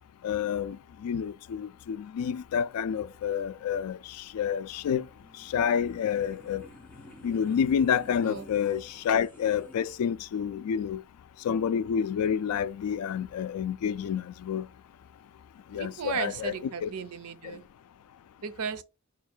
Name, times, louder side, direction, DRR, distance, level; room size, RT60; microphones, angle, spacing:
voice 1, 0.2-0.8 1.0-4.0 4.3-5.0 5.5-6.6 7.2-11.0 11.4-14.7 15.7-16.5 16.8-16.9, left 8 dB, 85° left, 0.3 m, -28 dB
sound 1, 5.1-10.0, equal, 5° left, 1.4 m, -52 dB
voice 2, 15.7-17.6 18.4-18.8, right 6 dB, 85° right, 0.5 m, -35 dB
4.7 x 2.4 x 4.4 m
head